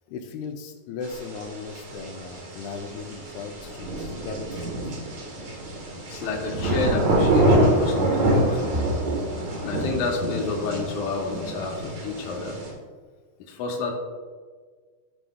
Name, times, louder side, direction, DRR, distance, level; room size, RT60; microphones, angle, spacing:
voice 1, 0.1-5.0, left 4 dB, 85° left, 3 dB, 2.6 m, -37 dB
sound 1, 1.0-12.7, right 1 dB, 55° right, 2.2 m, -26 dB
voice 2, 6.1-9.1 9.6-12.6 13.5-13.9, left 3 dB, 65° left, -1 dB, 2.0 m, -29 dB
14.0 x 5.0 x 2.3 m, 1.5 s
omnidirectional pair, 4.5 m